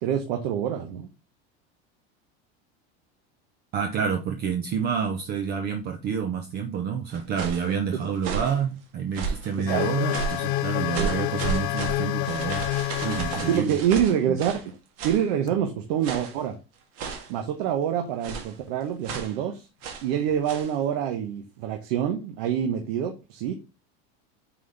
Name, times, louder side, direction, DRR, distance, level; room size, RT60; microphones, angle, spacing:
voice 1, 0.0-1.1 9.6-10.1 11.0-11.1 13.5-14.6 15.0-16.5 17.3-19.7 20.0-23.5, right 9 dB, 70° right, 1.1 m, -26 dB
voice 2, 3.7-12.7 13.0-13.8, right 7 dB, 30° right, 0.6 m, -28 dB
sound 1, 7.1-7.7 8.2-8.6 9.1-9.5 10.1-10.5 10.9-14.7 15.0-15.3 16.0-16.4 17.0-17.4 18.2-18.6 19.0-19.4 19.8-20.1 20.4-20.7, right 6 dB, 50° right, 1.7 m, -33 dB
sound 2, 9.7-13.6 15.5-15.6 20.3-20.4, left 15 dB, 50° left, 0.4 m, -28 dB
7.5 x 4.1 x 3.3 m
supercardioid pair, 160°, 30 cm